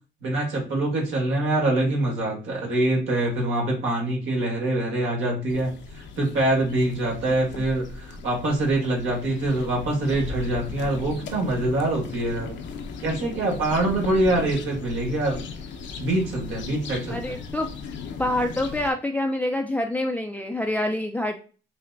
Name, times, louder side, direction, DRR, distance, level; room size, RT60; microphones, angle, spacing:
voice 1, 0.2-12.5 13.0-15.4 16.0-17.3, right 1 dB, 80° right, -1 dB, 1.6 m, -25 dB
sound 1, 5.5-18.9, left 4 dB, 65° left, 0.7 m, -37 dB
voice 2, 17.1-17.7 18.2-21.4, left 1 dB, 10° left, 3 dB, 0.4 m, -26 dB
5.7 x 2.1 x 2.6 m, 0.37 s
cardioid pair, 90°, 20 cm